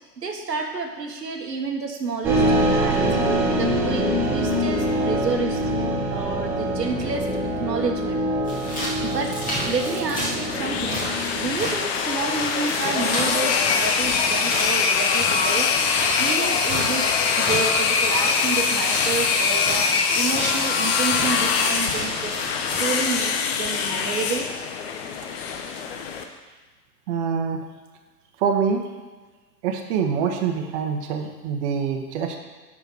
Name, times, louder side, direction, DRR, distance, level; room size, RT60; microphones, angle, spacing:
voice 1, 0.2-3.1 3.6-5.6 6.1-8.2 9.0-9.4 9.7-11.0 11.3-15.7 16.2-17.1 17.3-22.3 22.8-24.5, right 4 dB, 90° right, 3 dB, 1.1 m, -29 dB
sound 1, 2.2-12.0, right 1 dB, 5° right, 0.4 m, -24 dB
sound 2, 8.5-23.3, equal, 15° left, 1.8 m, -32 dB
sound 3, 10.3-26.2, left 5 dB, 40° left, 0.8 m, -23 dB
voice 2, 27.1-27.6 28.4-28.8 29.6-32.4, right 6 dB, 45° right, 3 dB, 1.0 m, -25 dB
6.7 x 6.0 x 4.7 m, 1.3 s
hypercardioid pair, 110°, 48 cm